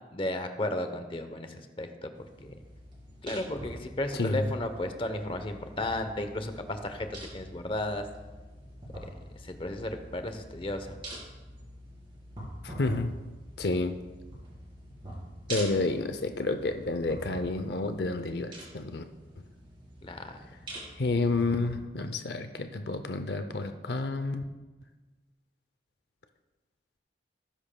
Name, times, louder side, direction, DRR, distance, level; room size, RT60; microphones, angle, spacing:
voice 1, 0.1-2.1 2.4-2.5 3.2-8.1 9.0-9.1 9.4-11.0 20.0-20.4, left 1 dB, 30° left, 7 dB, 0.8 m, -34 dB
sound 1, 2.2-21.7, right 1 dB, 30° right, 4.0 m, -45 dB
voice 2, 12.6-13.1 13.6-14.0 15.5-19.0 21.0-24.4, left 3 dB, 65° left, 8 dB, 0.6 m, -30 dB
18.0 x 10.0 x 2.3 m, 1.2 s
head